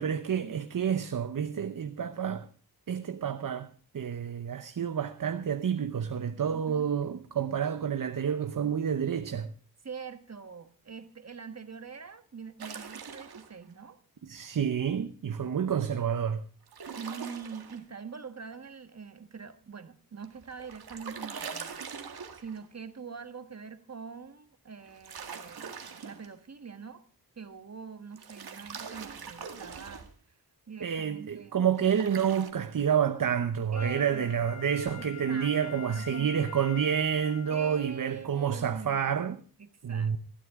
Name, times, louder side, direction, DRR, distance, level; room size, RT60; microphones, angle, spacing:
voice 1, 0.0-2.5 2.9-9.5 14.2-16.4 30.8-39.4 39.8-40.2, right 8 dB, 60° right, 0.9 m, -29 dB
voice 2, 6.5-6.9 9.8-14.0 16.9-25.7 26.0-27.0 27.4-30.1 30.7-31.6 33.7-34.5 35.0-36.3 37.5-39.2 39.6-40.1, right 6 dB, 45° right, 1.5 m, -44 dB
sound 1, 12.6-13.5 16.7-17.8 20.2-22.7 24.8-26.3 28.2-30.1 31.8-32.5, right 6 dB, 90° right, 1.9 m, -42 dB
Wind instrument woodwind instrument, 33.7-38.0 38.5-38.6, left 11 dB, 45° left, 1.6 m, -45 dB
20.5 x 13.0 x 3.7 m
wide cardioid pair, 100°, 37 cm